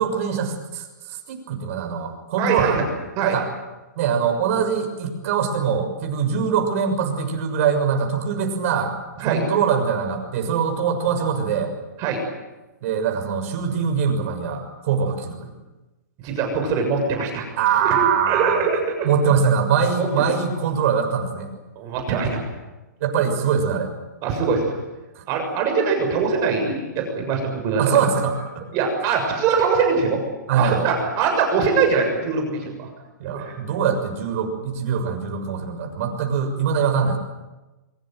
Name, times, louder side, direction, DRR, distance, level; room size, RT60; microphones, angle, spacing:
voice 1, 0.0-2.8 3.2-3.5 3.9-11.7 12.8-15.5 17.6-18.7 19.0-21.5 23.0-23.9 25.1-25.2 27.8-28.4 30.5-30.9 33.2-37.2, right 6 dB, 50° right, 4 dB, 6.6 m, -23 dB
voice 2, 2.4-2.8 3.2-3.4 9.2-9.4 12.0-12.2 16.2-17.4 17.8-19.1 20.0-20.1 21.8-22.4 24.2-24.7 25.3-28.0 28.7-30.2 30.5-32.9 33.3-33.6, right 5 dB, 35° right, 3 dB, 7.1 m, -22 dB
24.0 x 23.0 x 7.9 m, 1.1 s
hypercardioid pair, 145°, 10 cm